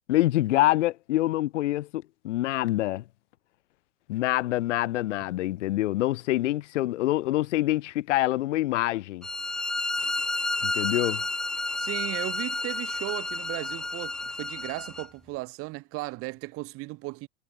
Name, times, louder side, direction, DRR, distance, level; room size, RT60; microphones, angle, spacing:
voice 1, 0.1-3.0 4.1-9.2 10.6-11.2, left 16 dB, 55° left, 0.6 m, -26 dB
sound 1, 9.2-15.1, left 2 dB, ahead, 0.3 m, -31 dB
voice 2, 11.8-17.3, right 22 dB, 30° right, 1.2 m, -36 dB
figure-of-eight pair, 95°, 44 cm